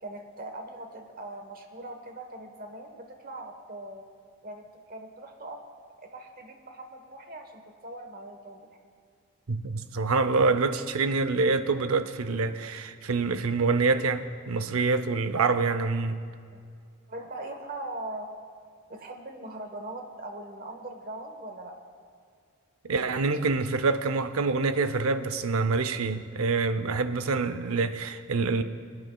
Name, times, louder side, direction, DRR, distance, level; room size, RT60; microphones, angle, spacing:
voice 1, 0.0-4.1 4.4-5.6 6.0-8.7 16.5-16.6 17.1-18.3 18.9-21.8, right 2 dB, 40° right, 5 dB, 1.1 m, -41 dB
voice 2, 9.5-16.2 22.9-28.6, right 4 dB, 80° right, 11 dB, 0.6 m, -26 dB
23.5 x 9.5 x 2.3 m, 2.2 s
head